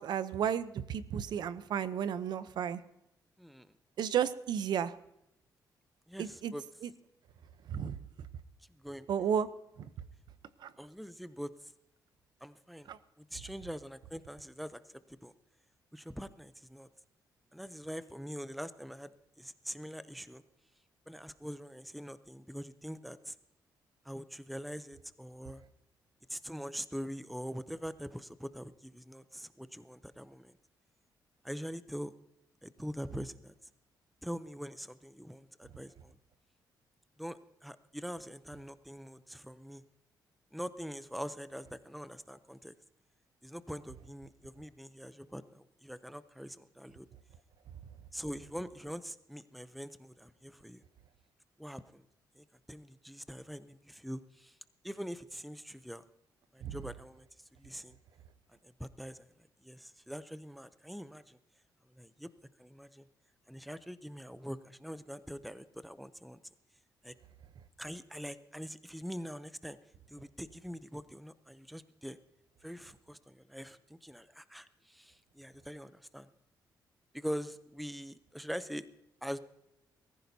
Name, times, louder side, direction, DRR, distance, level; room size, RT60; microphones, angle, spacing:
voice 1, 0.0-2.8 4.0-4.9 6.2-6.5 6.8-6.9 7.7-8.0 9.1-9.5 10.6-10.7 12.9-13.0 56.6-56.8, right 8 dB, 70° right, 14 dB, 0.7 m, -32 dB
voice 2, 3.4-3.7 6.1-6.6 8.8-9.3 10.8-11.7 12.4-12.9 13.2-14.8 15.1-15.3 15.9-16.9 17.5-19.1 19.4-20.4 21.1-23.4 24.0-25.6 26.3-30.5 31.4-32.1 32.6-33.5 34.2-36.2 37.2-39.8 40.5-42.7 43.4-47.1 48.1-50.8 51.6-52.0 52.4-54.5 54.8-56.0 56.5-57.3 57.6-58.0 58.6-59.3 59.6-61.4 62.0-62.3 62.6-63.1 63.5-66.4 67.0-67.1 67.8-69.8 70.1-72.2 72.6-76.3 77.1-78.9 79.2-79.4, equal, ahead, 13 dB, 0.6 m, -43 dB
22.0 x 15.0 x 2.7 m, 0.86 s
cardioid pair, 130°, 8 cm